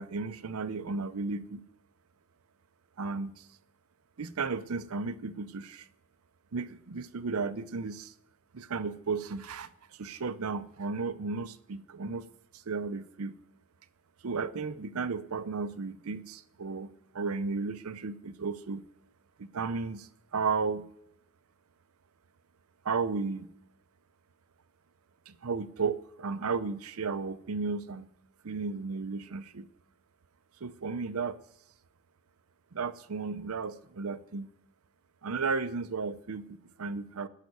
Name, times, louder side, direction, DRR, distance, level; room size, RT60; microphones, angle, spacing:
voice 1, 0.0-1.6 3.0-3.5 4.2-5.9 6.5-8.1 8.5-12.2 12.5-13.3 14.2-16.9 17.1-18.8 19.4-20.9 22.8-23.5 25.3-28.1 28.4-29.7 30.6-31.4 32.7-34.5 35.2-37.3, right 4 dB, 85° right, 13 dB, 0.6 m, -34 dB
14.5 x 5.8 x 9.4 m, 0.77 s
head